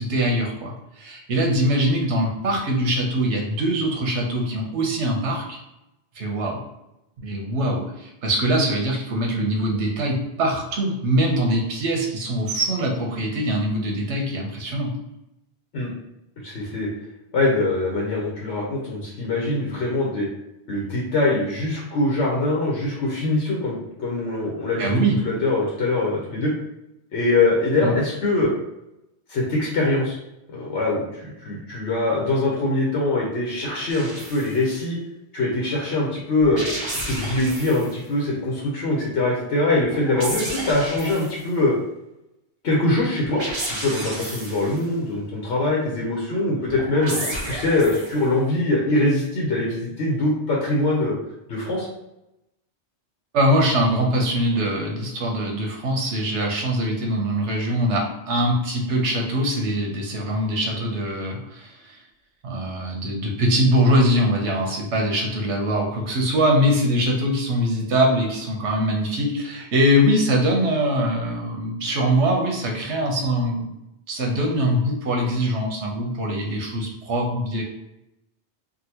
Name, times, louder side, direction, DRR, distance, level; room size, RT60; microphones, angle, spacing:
voice 1, 0.0-5.6 6.1-6.6 7.2-14.9 24.8-25.2 27.8-27.9 53.3-62.0 62.4-73.7 74.1-77.6, equal, 90° right, 0 dB, 1.1 m, -22 dB
voice 2, 16.4-16.9 17.3-20.3 20.7-24.9 25.2-26.5 27.1-28.5 29.3-30.2 30.5-35.0 35.3-36.6 37.1-41.7 42.6-47.2 47.4-51.2 51.5-51.9, left 2 dB, 90° left, -3 dB, 1.1 m, -23 dB
sound 1, 33.9-34.6 36.4-38.0 39.8-41.5 43.2-44.8 46.7-48.3, right 1 dB, 30° right, 0.6 m, -32 dB
3.8 x 2.2 x 2.9 m, 0.89 s
omnidirectional pair, 1.1 m